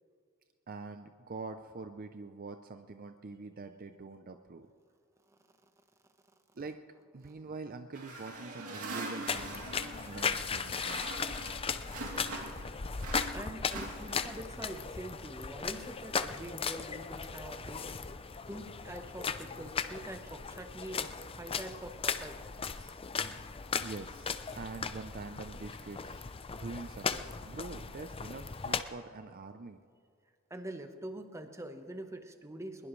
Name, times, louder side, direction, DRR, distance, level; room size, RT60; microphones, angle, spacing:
voice 1, 0.7-4.7 6.5-6.8 7.1-11.1 23.8-26.2 26.5-29.8, right 3 dB, 40° right, 8 dB, 0.5 m, -45 dB
sound 1, 7.9-12.7 13.0-14.5, right 2 dB, 85° right, 2.6 m, -42 dB
sound 2, 9.3-28.8, left 5 dB, 25° left, 0.5 m, -37 dB
voice 2, 13.3-17.9 18.5-22.4 22.8-23.0 30.5-32.9, right 1 dB, 15° right, 6 dB, 1.1 m, -45 dB
21.0 x 21.0 x 3.2 m, 2.2 s
head